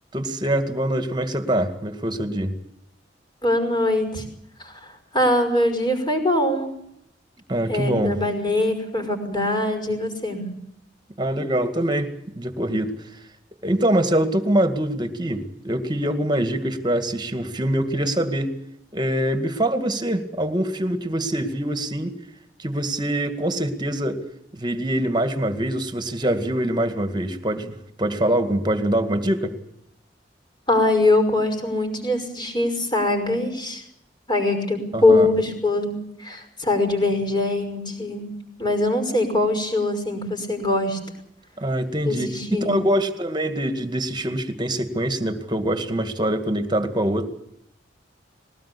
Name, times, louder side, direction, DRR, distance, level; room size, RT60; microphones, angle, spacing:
voice 1, 0.1-2.5 7.5-8.2 11.2-12.1 12.3-13.0 13.6-18.5 18.9-22.1 22.6-24.2 24.5-29.5 34.9-35.3 41.6-47.3, right 1 dB, 25° right, 9 dB, 2.1 m, -24 dB
voice 2, 3.4-4.2 4.6-6.7 7.7-10.5 30.7-33.8 34.3-35.9 36.2-38.3 38.6-41.0 42.0-42.8, left 2 dB, 25° left, 5 dB, 5.6 m, -22 dB
21.0 x 18.5 x 8.5 m, 0.76 s
head